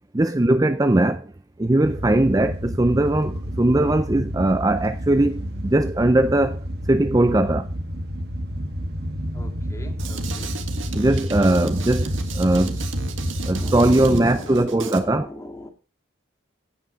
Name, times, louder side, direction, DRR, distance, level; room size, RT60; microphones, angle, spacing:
voice 1, 0.1-1.3 1.6-6.6 6.9-7.7 10.9-12.9 13.5-15.3, right 1 dB, 15° right, 0.4 m, -20 dB
sound 1, 1.8-14.1, equal, 50° right, 1.5 m, -30 dB
voice 2, 9.3-10.5 13.4-15.7, equal, 15° left, 2.1 m, -39 dB
Drum kit, 10.0-15.0, right 2 dB, 75° right, 1.9 m, -32 dB
17.0 x 5.9 x 5.1 m
head